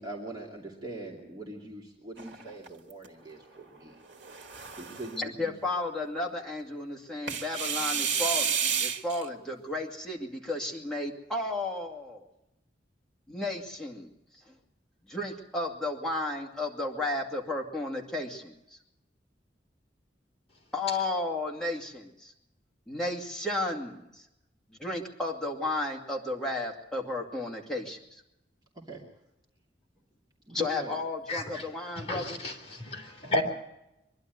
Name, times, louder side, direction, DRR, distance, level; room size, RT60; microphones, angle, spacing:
voice 1, 0.0-4.0 4.8-5.5 28.8-29.0 30.5-30.9, right 2 dB, 25° right, -2 dB, 2.7 m, -42 dB
sound 1, 2.2-3.1 4.1-5.2 7.3-9.3, right 7 dB, 80° right, 1.7 m, -31 dB
voice 2, 5.2-12.2 13.3-14.1 14.5-14.6 15.1-18.6 20.7-22.3 22.9-24.3 24.8-28.2 30.5-32.4, left 2 dB, 5° left, -1 dB, 2.4 m, -33 dB
voice 3, 31.3-31.6 32.0-33.4, left 1 dB, 35° left, 0 dB, 3.4 m, -32 dB
23.5 x 12.0 x 9.3 m, 0.88 s
head